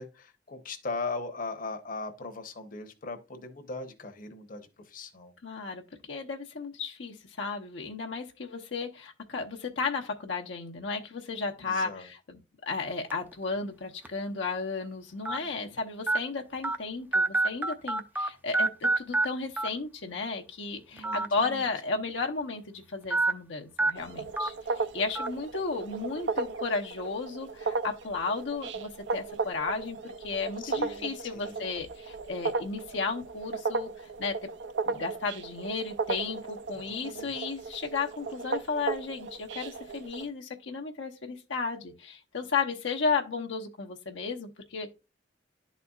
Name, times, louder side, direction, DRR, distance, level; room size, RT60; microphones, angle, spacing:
voice 1, 0.0-5.3 11.6-12.1 15.3-15.8 20.9-21.6 30.6-31.7 36.9-37.3, left 3 dB, 45° left, 0.9 m, -39 dB
voice 2, 5.4-34.4 34.8-44.9, left 4 dB, 80° left, 0.8 m, -34 dB
sound 1, 13.1-13.3 14.0-14.1 15.3-15.4 16.1-16.2 16.6-16.8 17.1-18.3 18.5-19.3 19.6-19.7 21.0-21.3 21.6-21.7 23.1-23.3 23.8-23.9 24.4-24.5 25.2-25.3, right 2 dB, 10° right, 0.5 m, -26 dB
sound 2, 23.9-40.3, right 4 dB, 70° right, 0.5 m, -35 dB
11.5 x 4.1 x 2.3 m
head